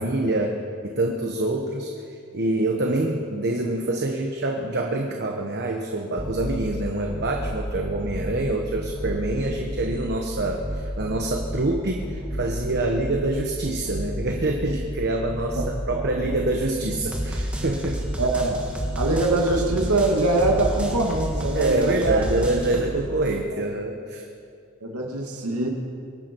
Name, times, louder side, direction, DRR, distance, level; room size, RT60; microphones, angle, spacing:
voice 1, 0.0-18.0 21.5-24.3, right 2 dB, 50° right, 2 dB, 1.1 m, -26 dB
sound 1, 6.2-6.7 7.1-8.4 8.7-10.0 10.4-11.6 12.0-13.3 13.6-14.9 15.3-16.5 16.9-22.8, equal, 5° right, 1.8 m, -30 dB
voice 2, 18.2-18.6 19.0-22.2 23.5-23.6 24.8-25.7, right 2 dB, 85° right, 1 dB, 2.2 m, -23 dB
23.5 x 12.0 x 4.6 m, 2.5 s
head